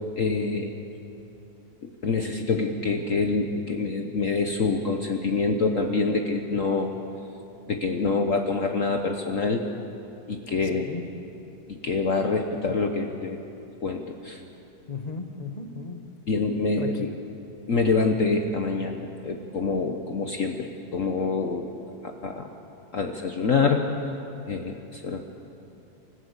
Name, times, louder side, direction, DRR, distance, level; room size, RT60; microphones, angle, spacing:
voice 1, 0.2-0.7 1.8-6.9 7.7-9.7 10.3-10.9 11.7-13.4 13.8-14.4 16.3-17.1 17.7-21.7 22.0-22.5 22.9-23.9 24.5-25.2, left 4 dB, 50° left, 4 dB, 1.2 m, -26 dB
voice 2, 10.7-11.0 14.9-16.0 16.4-17.1, left 4 dB, 25° left, 6 dB, 1.2 m, -36 dB
26.0 x 16.0 x 8.3 m, 3.0 s
omnidirectional pair, 2.0 m